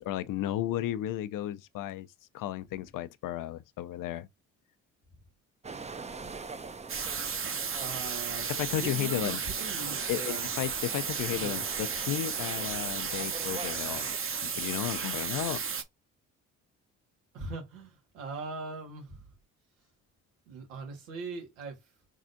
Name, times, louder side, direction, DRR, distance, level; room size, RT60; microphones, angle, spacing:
voice 1, 0.0-2.1 2.3-4.3 8.5-9.4 10.1-14.1 14.4-15.6, left 13 dB, 60° left, 0.6 m, -34 dB
sound 1, 5.6-14.2, right 4 dB, 20° right, 0.6 m, -45 dB
sound 2, 6.9-15.8, right 6 dB, 35° right, 0.9 m, -34 dB
voice 2, 7.7-10.5 11.4-11.6 17.3-19.2 20.5-21.8, right 4 dB, 90° right, 1.7 m, -40 dB
4.0 x 3.6 x 2.6 m
hypercardioid pair, 50°, 38 cm